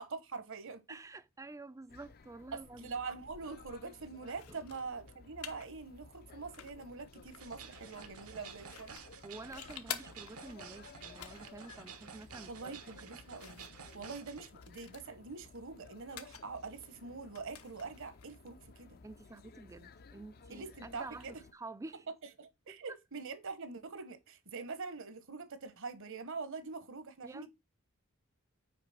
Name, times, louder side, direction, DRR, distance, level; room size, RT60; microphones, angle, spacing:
voice 1, 0.0-0.8 2.5-9.0 12.5-13.6 13.9-19.0 20.5-21.4 22.4-27.5, right 4 dB, 65° right, 1.1 m, -44 dB
voice 2, 0.9-3.0 4.5-4.6 9.2-12.7 19.0-22.1 22.7-22.8 27.2-27.5, right 3 dB, 15° right, 0.4 m, -49 dB
sound 1, 1.9-21.5, left 4 dB, 45° left, 0.5 m, -57 dB
sound 2, 4.3-19.5, left 9 dB, 85° left, 1.0 m, -52 dB
sound 3, 7.4-14.5, right 6 dB, 85° right, 1.2 m, -52 dB
5.9 x 4.8 x 5.8 m
head